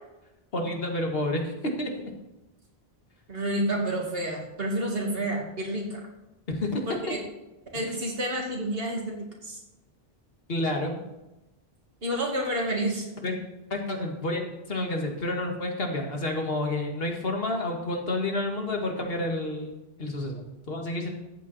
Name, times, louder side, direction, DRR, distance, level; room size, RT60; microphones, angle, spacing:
voice 1, 0.5-1.9 6.5-6.8 7.9-8.0 10.5-11.0 13.2-13.4 13.7-19.7 20.0-20.4 20.7-21.1, left 1 dB, 70° left, 2 dB, 2.0 m, -29 dB
voice 2, 3.3-6.0 7.1-7.2 7.7-9.6 12.0-13.1, right 1 dB, 65° right, 0 dB, 2.6 m, -29 dB
13.5 x 8.5 x 4.2 m, 0.98 s
omnidirectional pair, 1.0 m